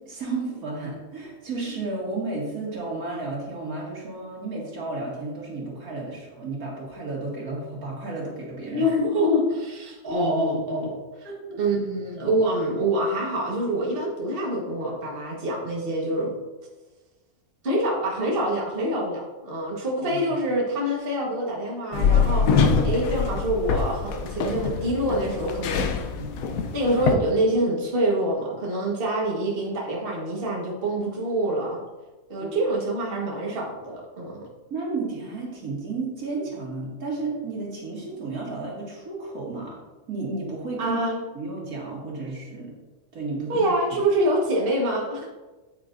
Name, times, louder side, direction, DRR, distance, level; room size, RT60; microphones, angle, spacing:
voice 1, 0.0-8.9 11.2-11.6 20.0-20.2 26.2-26.3 32.4-32.5 34.7-39.8 40.1-41.0 41.3-42.7 43.1-43.7, right 3 dB, 80° right, -4 dB, 2.6 m, -32 dB
voice 2, 8.7-10.9 11.6-16.3 17.6-25.9 26.7-31.8 32.3-34.4 40.8-41.2 43.5-45.3, right 1 dB, 40° right, -2 dB, 1.6 m, -25 dB
sound 1, 21.9-27.2, left 5 dB, 75° left, 1.1 m, -24 dB
9.2 x 8.6 x 2.6 m, 1.2 s
omnidirectional pair, 1.5 m